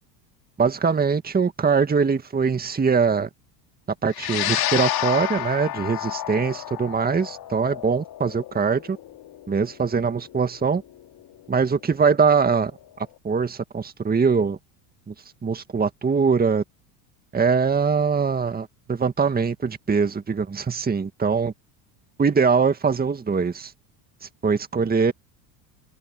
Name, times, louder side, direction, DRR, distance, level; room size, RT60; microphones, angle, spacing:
voice 1, 0.6-3.3 4.0-9.0 9.5-10.8 11.5-12.7 13.2-14.6 15.1-15.2 15.4-16.6 17.3-21.5 22.2-23.7 24.4-25.1, right 5 dB, 20° right, 1.9 m, -22 dB
sound 1, 4.1-12.7, left 13 dB, 50° left, 3.1 m, -30 dB
open air
supercardioid pair, 95°, 48 cm